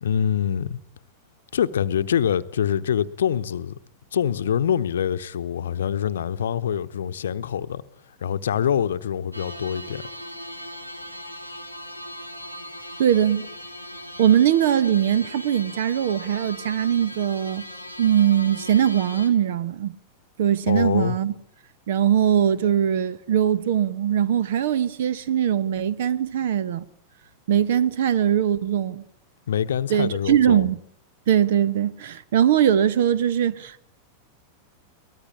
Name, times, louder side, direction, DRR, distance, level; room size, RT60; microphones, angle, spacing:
voice 1, 0.0-0.8 1.5-3.8 4.1-7.8 8.2-10.1 20.7-21.2 29.5-30.7, left 9 dB, 65° left, 0.9 m, -25 dB
sound 1, 9.3-19.3, left 1 dB, 90° right, 2.1 m, -39 dB
voice 2, 13.0-13.5 14.2-17.6 18.0-19.9 20.4-21.3 21.9-26.8 27.5-29.0 29.9-30.8 31.3-33.9, right 9 dB, 55° right, 1.0 m, -21 dB
23.5 x 19.0 x 8.7 m
figure-of-eight pair, 90°, 0 cm